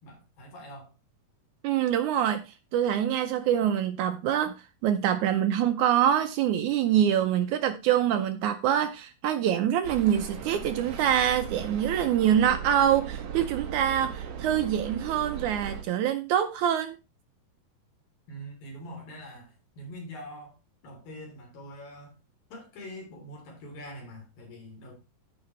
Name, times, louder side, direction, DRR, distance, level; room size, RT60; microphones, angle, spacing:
voice 1, 0.0-0.9 18.3-20.6 20.8-22.2 22.5-24.9, equal, 90° left, 5.1 m, -44 dB
voice 2, 1.6-4.6 4.8-17.0, right 10 dB, 75° right, 1.8 m, -25 dB
sound 1, 9.8-15.8, right 8 dB, 55° right, 1.8 m, -38 dB
15.0 x 5.2 x 3.1 m
omnidirectional pair, 4.0 m